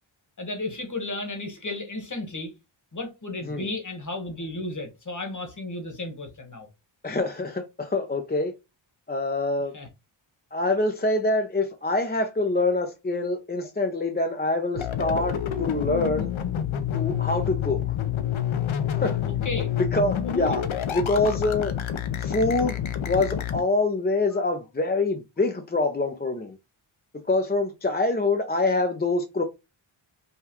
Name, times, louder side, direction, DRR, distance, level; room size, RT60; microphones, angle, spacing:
voice 1, 0.4-2.5 2.9-6.7 9.7-9.9 19.4-19.7 20.4-20.6, left 2 dB, 35° left, 1.3 m, -33 dB
voice 2, 7.0-8.5 9.1-9.8 10.5-16.3 16.9-18.0 18.9-19.2 19.9-20.6 20.9-21.7 22.2-26.6 27.3-29.4, left 2 dB, 20° left, 0.5 m, -25 dB
sound 1, 14.7-23.6, left 9 dB, 70° left, 0.8 m, -28 dB
5.6 x 2.3 x 2.9 m
wide cardioid pair, 100°, 49 cm